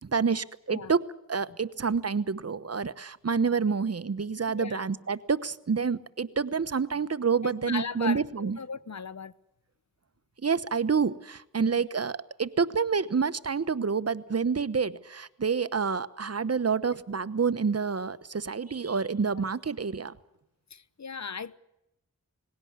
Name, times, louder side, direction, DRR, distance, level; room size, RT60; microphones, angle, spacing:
voice 1, 0.0-1.0 1.3-8.6 10.4-20.1, right 5 dB, 45° right, 1.1 m, -28 dB
voice 2, 4.5-4.8 7.6-9.3 11.6-11.9 20.7-21.5, left 5 dB, 55° left, 1.0 m, -37 dB
20.5 x 17.0 x 9.5 m
cardioid pair, 45°, 33 cm